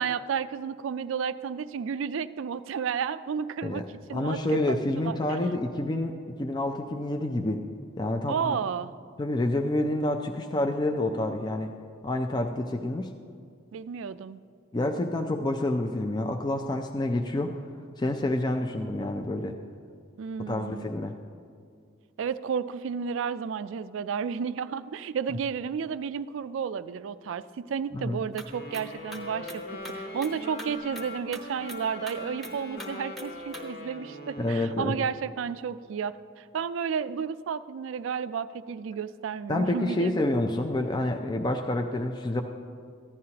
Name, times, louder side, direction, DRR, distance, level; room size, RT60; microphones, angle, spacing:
voice 1, 0.0-3.8 4.1-5.4 8.3-8.9 13.7-14.4 20.2-20.9 22.2-29.6 29.9-40.4, right 6 dB, 70° right, 14 dB, 0.3 m, -32 dB
voice 2, 3.6-6.1 6.4-7.6 8.0-8.6 9.2-11.7 12.0-13.1 14.7-17.5 18.0-19.5 20.5-21.1 27.9-28.2 34.4-34.9 39.5-42.4, left 1 dB, 20° left, 4 dB, 0.4 m, -28 dB
sound 1, 28.2-33.6, right 1 dB, ahead, 0.8 m, -45 dB
Wind instrument woodwind instrument, 28.5-35.0, left 1 dB, 55° left, 1.3 m, -41 dB
15.0 x 11.0 x 2.9 m, 2.2 s
head